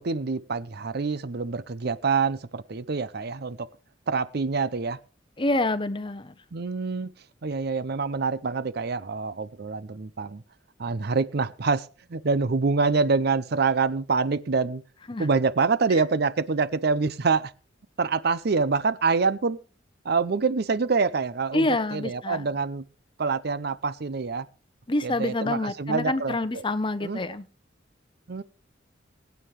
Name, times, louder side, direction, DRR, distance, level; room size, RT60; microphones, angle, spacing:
voice 1, 0.0-3.7 4.1-5.0 6.5-7.1 7.4-10.4 10.8-11.9 12.1-14.8 15.2-17.5 18.0-19.6 20.1-22.8 23.2-24.5 25.0-26.6 27.0-27.2 28.3-28.4, right 4 dB, 60° right, 0.6 m, -26 dB
voice 2, 5.4-6.3 15.1-15.3 21.5-22.4 24.9-27.4, left 2 dB, 25° left, 0.9 m, -27 dB
21.5 x 9.5 x 3.2 m
head